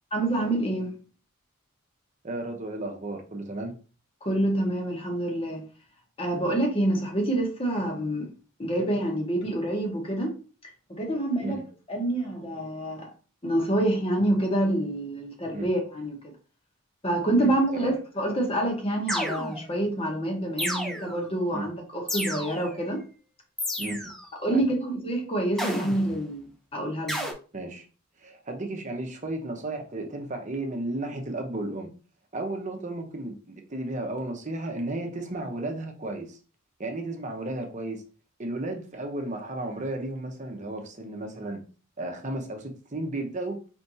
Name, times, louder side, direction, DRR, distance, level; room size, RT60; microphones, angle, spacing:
voice 1, 0.1-0.9 4.2-5.6 6.2-8.3 8.6-10.3 10.9-11.6 11.9-13.1 13.4-16.3 17.0-23.0 24.4-27.3, right 1 dB, 25° left, 1.1 m, -27 dB
voice 2, 2.2-3.7 11.4-11.6 15.5-15.7 17.4-17.9 21.5-21.7 23.8-24.0 24.5-24.6 27.5-27.8 28.2-31.9 32.3-36.4 36.8-38.0 38.4-41.6 42.0-43.6, right 2 dB, 35° right, 0.9 m, -33 dB
sound 1, 19.1-19.8 20.6-21.3 22.1-22.8 23.6-24.3 25.6-26.2 27.1-27.3, equal, ahead, 0.7 m, -32 dB
4.5 x 3.3 x 2.7 m
head